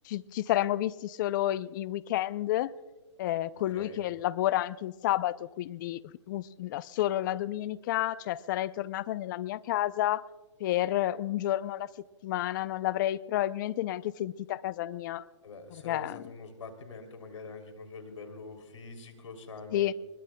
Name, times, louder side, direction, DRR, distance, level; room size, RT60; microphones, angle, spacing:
voice 1, 0.0-2.7 3.2-10.2 10.6-11.9 12.2-15.2 15.8-16.2 19.7-19.9, left 14 dB, 40° left, 18 dB, 0.4 m, -30 dB
voice 2, 15.4-19.9, left 3 dB, 85° left, 6 dB, 3.0 m, -45 dB
23.0 x 21.0 x 2.2 m, 1.2 s
hypercardioid pair, 145°, 16 cm